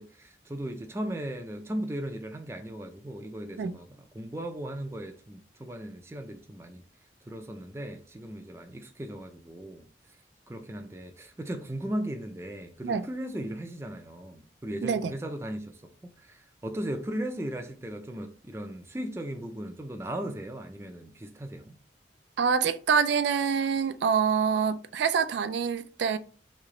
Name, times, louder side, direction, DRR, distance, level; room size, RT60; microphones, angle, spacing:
voice 1, 0.0-3.9 4.1-6.8 7.3-9.9 10.5-15.8 16.2-21.8, right 1 dB, 15° right, 0.4 m, -37 dB
voice 2, 14.8-15.1 22.4-26.2, right 6 dB, 80° right, 0.3 m, -26 dB
3.2 x 2.9 x 3.7 m
head